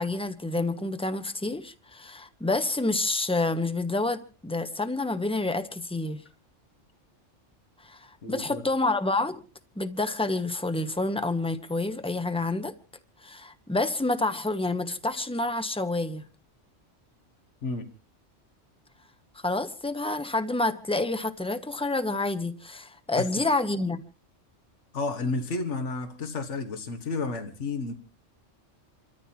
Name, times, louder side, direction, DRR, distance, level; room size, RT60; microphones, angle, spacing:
voice 1, 0.0-6.2 7.8-8.0 8.3-9.4 9.8-12.7 13.2-16.3 19.4-24.0, left 2 dB, 5° left, 1.0 m, -28 dB
voice 2, 8.2-8.6 17.6-17.9 23.2-23.3 24.9-27.9, left 3 dB, 70° left, 1.8 m, -31 dB
28.5 x 14.0 x 2.9 m
omnidirectional pair, 1.3 m